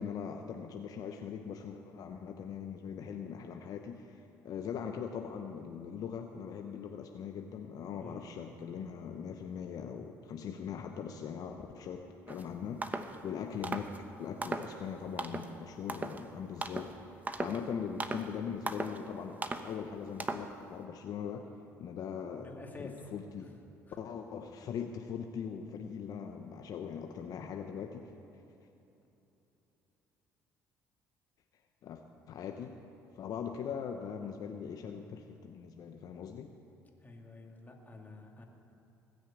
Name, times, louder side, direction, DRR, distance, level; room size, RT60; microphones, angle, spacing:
voice 1, 0.0-13.9 14.2-21.5 21.8-22.5 22.8-23.5 24.0-28.1 31.8-32.8 33.1-36.5, left 7 dB, 60° left, 4 dB, 0.8 m, -41 dB
sound 1, 12.3-12.5 12.8-13.2 13.6-14.0 14.4-14.8 15.2-15.5 15.9-16.2 16.6-17.0 17.3-17.6 18.0-18.3 18.7-19.0 19.4-19.7 20.2-20.5, right 3 dB, 25° right, 1.0 m, -37 dB
voice 2, 22.4-23.0 23.9-24.0 37.0-38.4, left 3 dB, 25° left, 1 dB, 2.6 m, -49 dB
19.5 x 6.5 x 8.6 m, 3.0 s
supercardioid pair, 75°, 7 cm